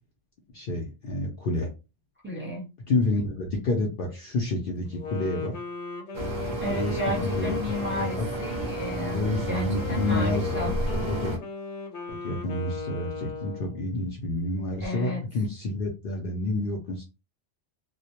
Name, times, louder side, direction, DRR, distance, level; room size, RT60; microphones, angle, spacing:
voice 1, 0.5-1.7 2.9-5.5 6.7-7.6 7.9-8.3 9.1-11.3 12.1-17.0, left 2 dB, 60° left, 0 dB, 0.6 m, -29 dB
voice 2, 2.2-2.7 6.6-10.8 14.8-15.2, left 1 dB, 10° right, -3 dB, 0.7 m, -33 dB
Wind instrument woodwind instrument, 4.9-13.9, left 3 dB, 80° left, 1.0 m, -37 dB
sound 1, 6.1-11.4, equal, 40° right, 0.4 m, -31 dB
2.2 x 2.1 x 2.8 m, 0.29 s
omnidirectional pair, 1.2 m